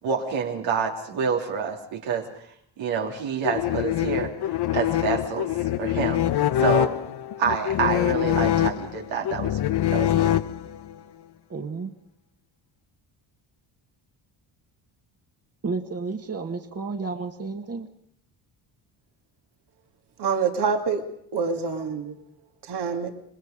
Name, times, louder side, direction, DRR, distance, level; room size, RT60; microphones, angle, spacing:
voice 1, 0.0-2.3 2.8-4.3 4.7-5.5 5.8-7.0 7.4-9.6 9.9-10.3, right 6 dB, 80° right, 1 dB, 3.4 m, -27 dB
sound 1, 3.4-10.9, left 12 dB, 55° left, 0.9 m, -24 dB
voice 2, 11.5-11.9 15.6-17.9, right 4 dB, 30° right, 5 dB, 2.0 m, -31 dB
voice 3, 20.2-21.0 21.3-22.2 22.6-23.1, right 5 dB, 55° right, 4 dB, 2.5 m, -26 dB
25.5 x 21.0 x 5.2 m, 0.71 s
supercardioid pair, 75°, 46 cm